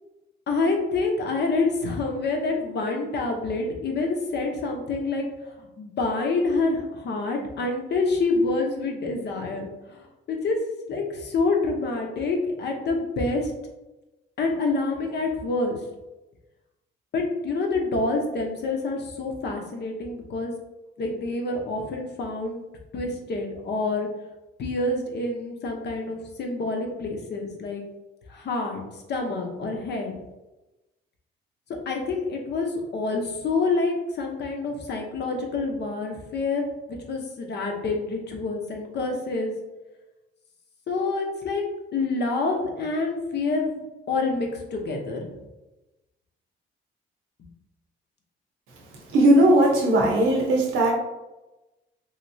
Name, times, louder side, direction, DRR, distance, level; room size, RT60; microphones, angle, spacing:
voice 1, 0.5-5.2 5.6-9.7 10.3-10.6 10.9-13.5 14.4-15.8 17.1-20.5 21.0-22.6 22.9-24.1 24.6-27.8 28.3-28.8 29.1-30.1 31.9-39.6 40.9-41.6 41.9-43.8 44.1-45.3, left 3 dB, 60° left, 2 dB, 0.8 m, -27 dB
voice 2, 49.1-50.9, right 1 dB, 85° right, 0 dB, 0.8 m, -18 dB
3.1 x 2.8 x 2.6 m, 1.0 s
cardioid pair, 90°, 20 cm